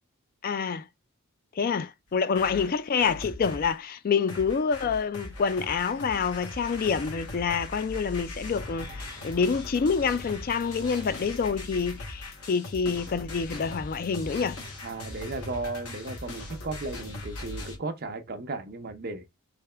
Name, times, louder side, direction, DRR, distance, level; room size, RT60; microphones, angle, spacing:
voice 1, 0.4-0.9 1.6-14.6, left 5 dB, 40° left, 0.3 m, -27 dB
sound 1, 2.1-3.8 4.3-17.8, left 2 dB, 80° left, 1.1 m, -40 dB
voice 2, 14.8-19.2, right 3 dB, 45° right, 0.7 m, -35 dB
3.4 x 2.8 x 3.3 m
head